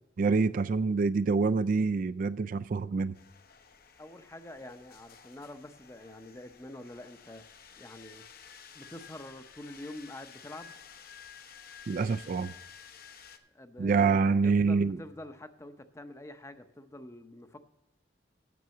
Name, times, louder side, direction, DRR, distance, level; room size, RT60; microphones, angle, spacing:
voice 1, 0.2-3.1 11.9-12.5 13.8-15.0, right 4 dB, 50° right, 13 dB, 0.3 m, -26 dB
sound 1, 3.1-13.4, left 7 dB, 55° left, 0.8 m, -52 dB
voice 2, 4.0-7.4 7.8-8.2 8.7-10.7 13.5-17.6, left 1 dB, 15° left, 9 dB, 0.6 m, -46 dB
9.3 x 6.7 x 7.0 m, 0.94 s
head